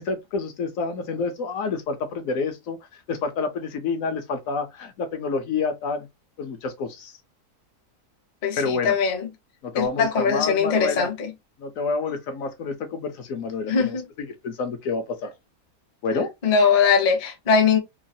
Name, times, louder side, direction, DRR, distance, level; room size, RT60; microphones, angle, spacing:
voice 1, 0.0-2.8 3.1-6.1 6.4-7.1 8.5-9.0 9.6-11.1 11.6-15.3 16.0-16.3, left 4 dB, 70° left, 1.0 m, -28 dB
voice 2, 8.4-9.3 9.7-11.3 13.7-14.0 16.4-17.8, left 5 dB, 45° left, 0.7 m, -21 dB
3.1 x 2.3 x 2.6 m
omnidirectional pair, 1.6 m